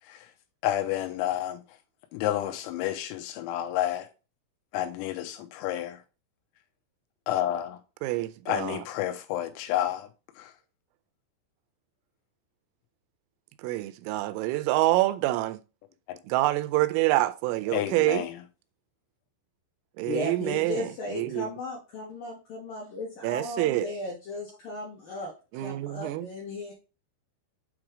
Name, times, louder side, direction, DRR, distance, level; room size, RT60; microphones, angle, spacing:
voice 1, 0.6-1.6 2.1-4.1 4.7-6.0 7.3-7.8 8.5-10.1 10.4-10.5 16.1-16.2 17.7-18.4, left 12 dB, 85° left, 3.7 m, -30 dB
voice 2, 8.0-8.8 13.6-15.6 16.3-18.3 20.0-21.5 23.2-23.9 25.5-26.3, right 18 dB, 85° right, 3.1 m, -26 dB
voice 3, 20.0-25.3 25.6-26.7, left 2 dB, 65° left, 2.2 m, -36 dB
8.5 x 3.3 x 5.0 m
omnidirectional pair, 6.0 m